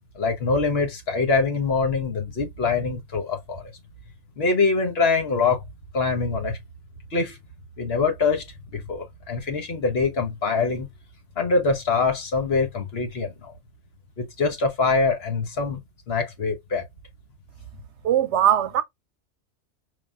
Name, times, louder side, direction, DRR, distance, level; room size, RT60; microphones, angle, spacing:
voice 1, 0.1-3.7 4.4-5.6 5.9-6.6 7.1-7.4 7.8-8.4 8.7-10.9 11.4-13.5 14.2-15.8 16.1-16.8, left 4 dB, 60° left, 1.2 m, -24 dB
voice 2, 18.0-18.8, right 10 dB, 75° right, 0.9 m, -20 dB
4.9 x 2.8 x 2.3 m
omnidirectional pair, 1.2 m